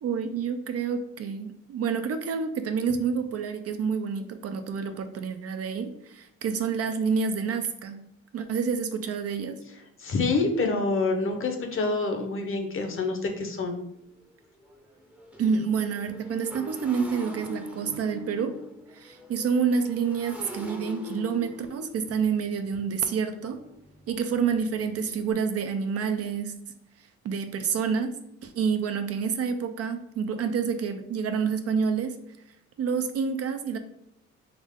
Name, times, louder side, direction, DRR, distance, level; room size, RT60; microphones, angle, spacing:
voice 1, 0.0-8.0 8.3-9.6 15.4-18.6 18.9-23.6 24.1-26.5 27.2-32.2 32.8-33.8, right 6 dB, 55° right, 8 dB, 0.5 m, -28 dB
voice 2, 10.0-13.8, left 3 dB, 45° left, 4 dB, 0.8 m, -27 dB
Motorcycle, 12.7-12.8 13.3-13.4 13.7-25.3, left 1 dB, 5° right, 0.7 m, -43 dB
3.6 x 3.0 x 3.6 m, 0.79 s
cardioid pair, 90°, 30 cm